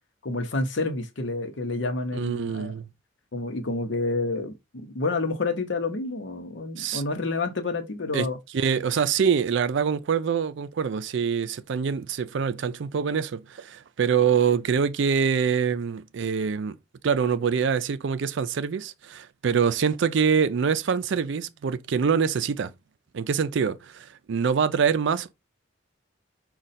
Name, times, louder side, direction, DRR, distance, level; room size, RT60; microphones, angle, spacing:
voice 1, 0.2-2.7 3.3-8.4, left 3 dB, 65° left, 0.8 m, -29 dB
voice 2, 2.1-2.9 6.8-7.0 8.1-8.3 8.5-16.8 17.0-22.7 23.1-25.3, right 6 dB, 65° right, 0.4 m, -25 dB
5.1 x 2.3 x 4.1 m
head